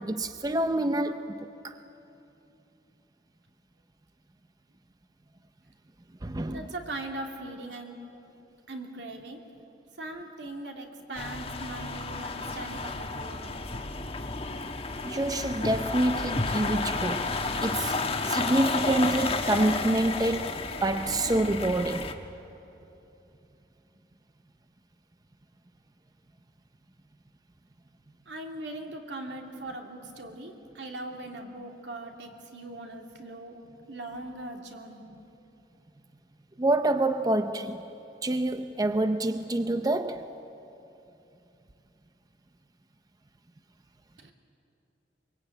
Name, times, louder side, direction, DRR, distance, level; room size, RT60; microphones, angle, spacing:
voice 1, 0.0-1.8 6.2-6.7 15.0-17.3 17.6-18.0 18.2-22.2 36.6-37.8 38.2-40.3, right 1 dB, 20° right, 0.6 m, -27 dB
voice 2, 6.5-8.0 8.7-9.4 10.0-13.6 28.3-33.6 33.9-35.1 44.2-44.3, right 2 dB, 80° right, 2.6 m, -40 dB
sound 1, 11.1-22.1, left 3 dB, 35° left, 1.2 m, -32 dB
23.5 x 22.0 x 9.0 m
head